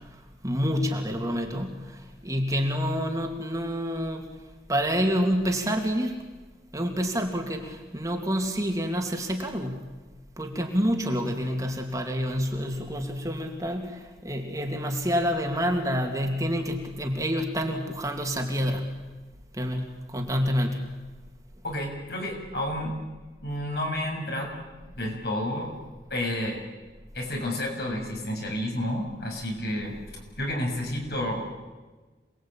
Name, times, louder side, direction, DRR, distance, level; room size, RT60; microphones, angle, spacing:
voice 1, 0.4-4.2 4.7-6.1 6.7-9.8 10.4-19.0 19.6-20.8, equal, 20° right, 2 dB, 2.6 m, -28 dB
voice 2, 21.6-22.9 23.4-24.5 25.0-25.7 26.1-26.6 27.1-31.6, left 1 dB, 65° left, 1 dB, 6.9 m, -30 dB
27.5 x 20.5 x 8.9 m, 1.2 s
head